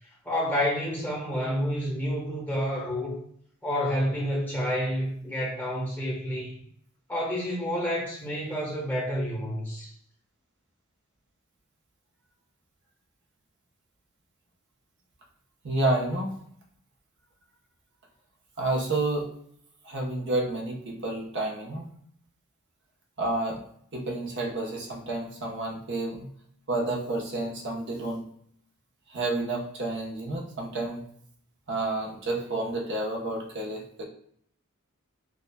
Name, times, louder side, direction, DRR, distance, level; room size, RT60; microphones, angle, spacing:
voice 1, 0.2-3.2 3.6-6.5 7.1-9.9, equal, 10° left, -5 dB, 1.2 m, -29 dB
voice 2, 15.6-16.4 18.6-19.3 19.8-21.9 23.2-23.6 23.9-26.3 26.7-28.2 29.1-31.0 31.7-34.0, right 2 dB, 55° right, 0 dB, 0.9 m, -30 dB
6.2 x 2.3 x 2.2 m, 0.66 s
head